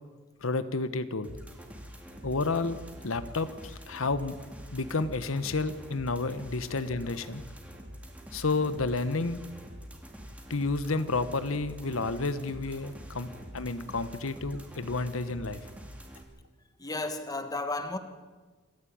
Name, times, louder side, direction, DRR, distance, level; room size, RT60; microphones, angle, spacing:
voice 1, 0.4-1.3 2.2-2.8 3.0-4.4 4.7-7.4 8.3-9.4 10.5-13.3 13.5-15.6, left 3 dB, 90° left, 1.2 m, -30 dB
sound 1, 1.2-16.2, equal, 5° right, 3.1 m, -46 dB
voice 2, 16.8-18.0, left 2 dB, 20° left, 1.7 m, -33 dB
27.5 x 14.0 x 8.8 m
head